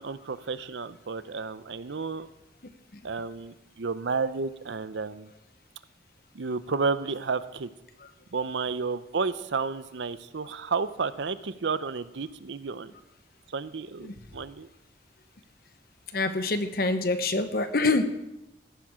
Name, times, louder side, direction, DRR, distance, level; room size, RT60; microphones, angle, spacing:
voice 1, 0.0-2.3 3.0-5.3 6.3-7.7 8.3-12.9 13.5-14.7, right 4 dB, 75° right, 14 dB, 0.6 m, -31 dB
voice 2, 16.1-18.0, left 3 dB, 50° left, 9 dB, 0.9 m, -26 dB
14.0 x 10.5 x 5.0 m, 0.94 s
head